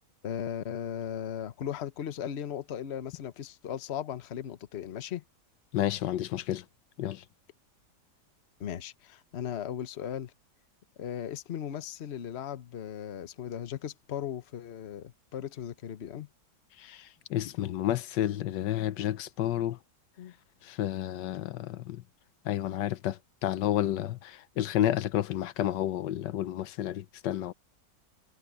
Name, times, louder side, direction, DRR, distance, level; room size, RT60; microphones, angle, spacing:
voice 1, 0.2-5.2 8.6-10.3 11.0-16.3 20.2-20.3 22.6-22.8, left 9 dB, 45° left, 1.0 m, -37 dB
voice 2, 5.7-6.6 7.0-7.2 16.8-19.8 20.6-22.0 22.5-27.5, left 12 dB, 85° left, 1.4 m, -31 dB
omnidirectional pair, 1.9 m